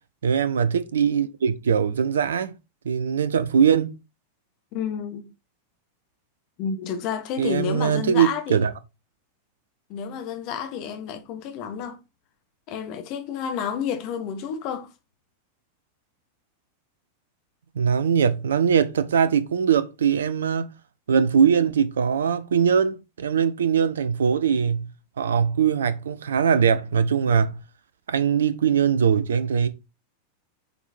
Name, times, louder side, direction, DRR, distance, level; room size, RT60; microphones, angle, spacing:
voice 1, 0.2-2.5 2.8-4.0 7.4-8.7 17.7-20.7 21.1-24.9 25.2-27.5 28.1-29.7, right 7 dB, 65° right, 0.7 m, -21 dB
voice 2, 4.7-5.3 6.6-8.7 9.9-12.0 12.7-14.9, left 7 dB, 40° left, 1.3 m, -30 dB
6.9 x 4.6 x 4.3 m
figure-of-eight pair, 90°, 0 cm